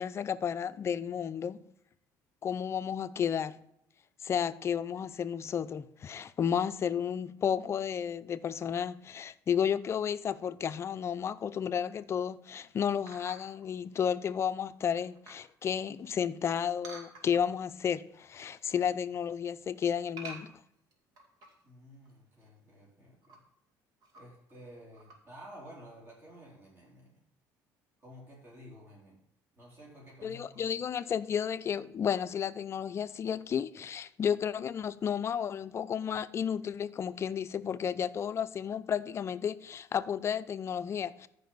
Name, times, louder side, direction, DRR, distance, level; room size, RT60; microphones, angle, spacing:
voice 1, 0.0-1.6 2.4-3.5 4.2-20.5 30.2-41.3, left 8 dB, 35° left, 0.5 m, -32 dB
sound 1, 11.7-12.1 13.1-13.7 14.3-14.4 14.8-15.5 16.8-17.6 18.1-18.6 18.9-19.3 20.2-21.7 22.1-22.2 22.4-22.5 23.1-23.4 24.0-24.5 24.9-25.2, right 3 dB, 60° right, 2.2 m, -49 dB
voice 2, 21.6-23.4 24.1-27.2 28.0-29.3 29.5-30.7, equal, 35° right, 4.1 m, -52 dB
14.0 x 5.3 x 4.0 m
cardioid pair, 115°, 7 cm